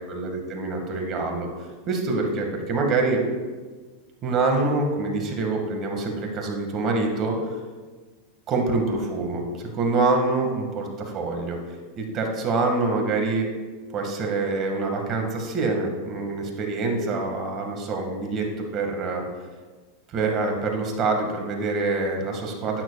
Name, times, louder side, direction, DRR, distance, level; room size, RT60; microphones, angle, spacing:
voice 1, 0.0-1.5 1.9-3.2 4.2-7.5 8.5-9.4 9.7-11.6 12.0-13.5 13.9-19.3 20.1-22.8, right 3 dB, 40° right, 2 dB, 2.0 m, -25 dB
12.0 x 9.2 x 2.4 m, 1.4 s
hypercardioid pair, 115°, 0 cm